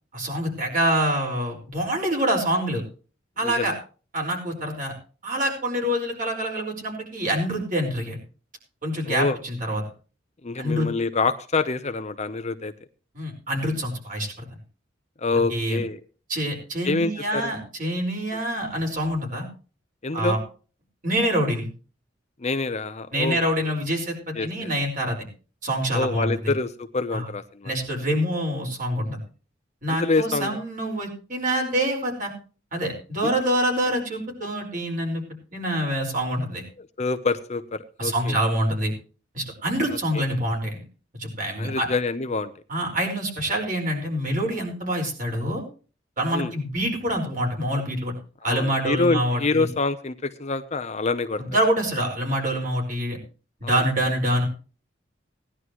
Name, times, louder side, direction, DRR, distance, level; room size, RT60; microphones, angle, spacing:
voice 1, 0.1-2.8 3.4-3.7 4.1-4.9 5.2-8.2 8.8-9.8 10.6-10.9 13.1-14.4 15.5-15.8 16.3-19.4 20.1-20.4 21.0-21.7 23.1-25.3 25.6-26.5 27.1-27.3 27.6-29.2 29.8-32.3 32.7-35.2 35.5-36.6 38.0-38.9 39.3-40.8 41.2-41.9 42.7-45.6 46.2-48.1 48.4-49.7 51.4-53.2 53.6-54.4, right 1 dB, 45° right, 1 dB, 5.0 m, -26 dB
voice 2, 3.4-3.7 9.0-9.4 10.4-12.7 15.2-16.0 16.8-17.5 18.3-18.4 20.0-20.4 22.4-23.7 24.3-24.7 25.9-27.7 29.9-30.6 33.2-33.3 36.8-38.4 40.1-40.3 41.6-42.5 46.3-46.5 48.4-51.4 53.6-53.8, left 3 dB, 40° left, 11 dB, 0.8 m, -26 dB
18.5 x 11.0 x 3.1 m, 0.36 s
head